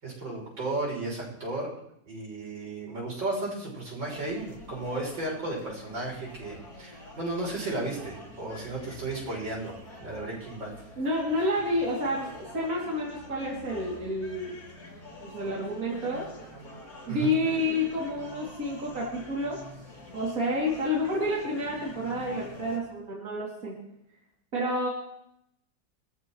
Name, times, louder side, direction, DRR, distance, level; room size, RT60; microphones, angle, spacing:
voice 1, 0.0-1.7 2.1-10.7 17.1-17.4, right 2 dB, 85° right, -3 dB, 7.2 m, -34 dB
sound 1, 4.0-22.8, left 1 dB, 50° left, 3.7 m, -47 dB
voice 2, 11.0-14.6 15.2-16.3 17.1-19.6 20.1-23.8 24.5-24.9, left 1 dB, 45° right, -4 dB, 3.3 m, -29 dB
25.0 x 14.5 x 3.2 m, 0.79 s
omnidirectional pair, 2.0 m